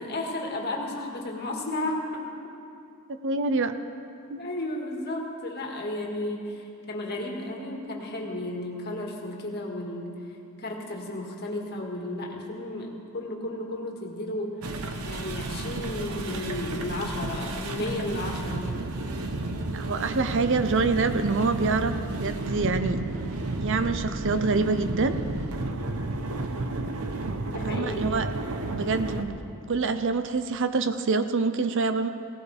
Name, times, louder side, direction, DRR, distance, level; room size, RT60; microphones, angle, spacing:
voice 1, 0.0-2.2 4.4-10.1 10.6-14.5 15.0-18.8 27.4-28.2, left 1 dB, 50° left, 0 dB, 1.9 m, -33 dB
voice 2, 3.1-3.7 4.3-4.5 19.7-23.0 23.6-25.1 27.6-28.3 28.7-29.4 29.7-32.1, right 4 dB, 60° right, 10 dB, 0.6 m, -26 dB
sound 1, 14.6-29.2, right 2 dB, 85° right, 0.9 m, -32 dB
18.5 x 17.0 x 3.4 m, 2.5 s
head